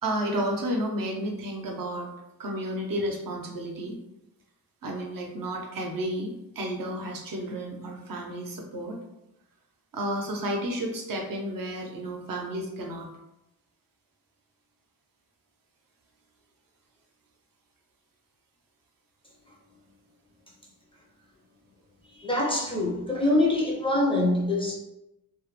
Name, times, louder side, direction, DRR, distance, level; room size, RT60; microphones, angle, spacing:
voice 1, 0.0-2.1 2.4-4.0 4.8-9.0 9.9-13.1, right 1 dB, 70° right, 0 dB, 0.6 m, -32 dB
voice 2, 22.1-24.8, left 1 dB, 15° left, -4 dB, 0.4 m, -24 dB
2.2 x 2.0 x 3.0 m, 0.91 s
wide cardioid pair, 165°, 36 cm